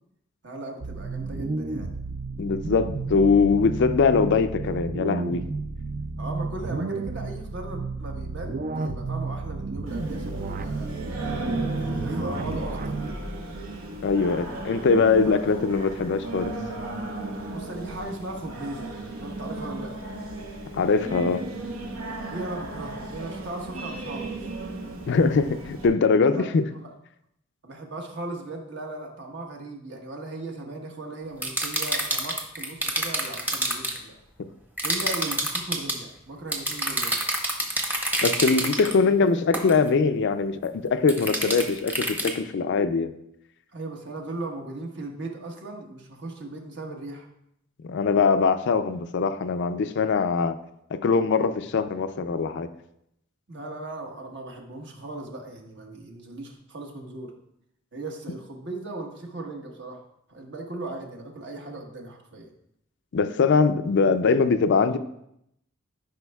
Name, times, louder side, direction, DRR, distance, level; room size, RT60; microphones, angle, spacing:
voice 1, 0.4-1.9 6.2-10.9 11.8-13.2 15.2-15.4 17.5-18.9 19.2-20.1 22.2-24.4 26.2-26.9 27.6-34.1 34.8-37.2 43.7-47.3 53.5-57.3 57.9-60.0 60.3-62.5, right 2 dB, 60° right, 1 dB, 1.3 m, -37 dB
sound 1, 0.8-13.1, right 3 dB, 40° right, 0.4 m, -32 dB
voice 2, 2.4-5.4 14.0-16.5 20.7-21.4 25.1-26.7 38.2-43.1 47.8-50.5 51.0-52.7 63.1-65.0, left 4 dB, 60° left, 10 dB, 0.4 m, -22 dB
Singing, 9.9-25.9, right 2 dB, 80° right, 1.1 m, -35 dB
sound 2, 31.4-34.0 34.8-36.0 36.5-38.9 39.5-39.8 41.1-42.3, right 1 dB, 10° right, 0.8 m, -27 dB
12.0 x 5.3 x 2.3 m, 0.77 s
head